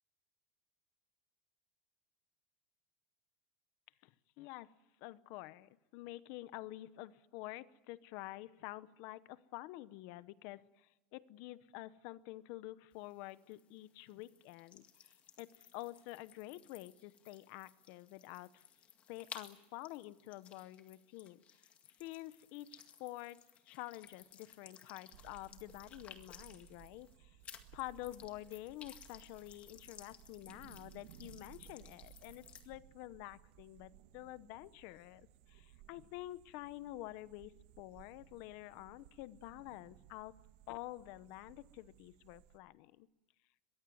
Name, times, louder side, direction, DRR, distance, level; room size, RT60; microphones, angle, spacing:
voice 1, 4.0-4.7 5.0-18.6 19.1-21.7 22.0-27.4 27.7-40.3 40.7-43.1, left 17 dB, 50° left, 16 dB, 0.9 m, -49 dB
sound 1, 12.9-27.2 27.4-32.7, left 8 dB, 25° left, 1.9 m, -58 dB
sound 2, 25.1-42.6, right 13 dB, 65° right, 1.8 m, -61 dB
23.0 x 21.5 x 9.3 m, 1.0 s
cardioid pair, 175°, 5 cm